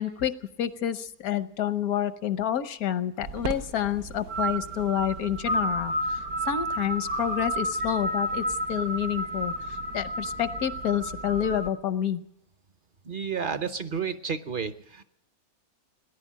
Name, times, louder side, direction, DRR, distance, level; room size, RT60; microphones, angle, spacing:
voice 1, 0.0-12.2, left 10 dB, 80° left, 13 dB, 1.3 m, -29 dB
sound 1, 3.2-11.7, right 1 dB, 75° right, 1.3 m, -31 dB
voice 2, 13.0-15.0, right 6 dB, 50° right, 12 dB, 0.7 m, -31 dB
17.5 x 10.5 x 7.4 m, 0.77 s
omnidirectional pair, 1.5 m